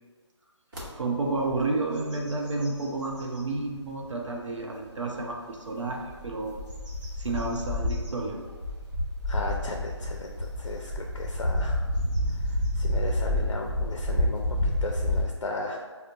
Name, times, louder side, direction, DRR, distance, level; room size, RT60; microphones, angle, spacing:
sound 1, 0.7-0.9 1.4-1.6 2.0-3.5 4.0-4.1 5.9-15.2, left 1 dB, 45° right, 1.0 m, -29 dB
voice 1, 0.9-6.6 7.2-8.4, right 3 dB, 75° right, 0 dB, 0.7 m, -31 dB
voice 2, 9.3-11.8 12.5-15.8, left 2 dB, 75° left, 1 dB, 0.4 m, -36 dB
5.1 x 2.1 x 2.5 m, 1.5 s
figure-of-eight pair, 150°, 16 cm